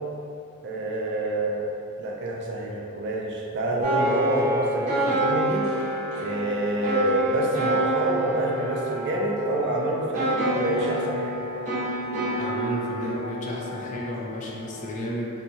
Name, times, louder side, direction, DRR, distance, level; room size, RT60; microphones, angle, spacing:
voice 1, 0.6-1.6 2.0-5.7 6.1-11.4, right 1 dB, 50° right, -1 dB, 0.4 m, -27 dB
sound 1, 3.8-14.9, right 1 dB, 35° right, 0.7 m, -28 dB
voice 2, 12.4-15.3, equal, 35° left, -2 dB, 0.3 m, -33 dB
2.7 x 2.3 x 2.7 m, 2.6 s
head